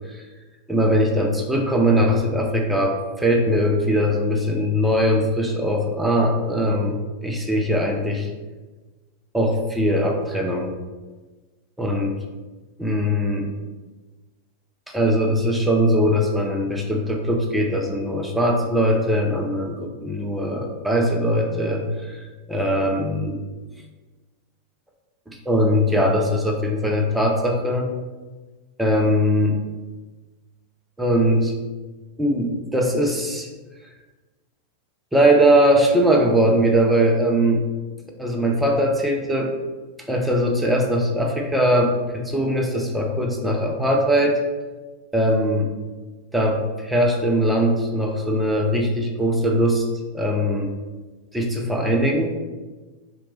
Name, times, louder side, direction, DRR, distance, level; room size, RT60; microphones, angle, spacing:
voice 1, 0.7-8.3 9.3-10.7 11.8-12.2 12.8-13.5 14.9-22.1 22.5-23.4 25.3-27.9 28.8-29.6 31.0-31.6 32.2-33.5 35.1-37.7 38.2-39.5 40.1-44.4 45.1-45.7 46.3-49.9 50.1-50.7 51.3-52.4, equal, 5° right, 1 dB, 0.4 m, -21 dB
2.9 x 2.1 x 2.9 m, 1.3 s
figure-of-eight pair, 90°, 0 cm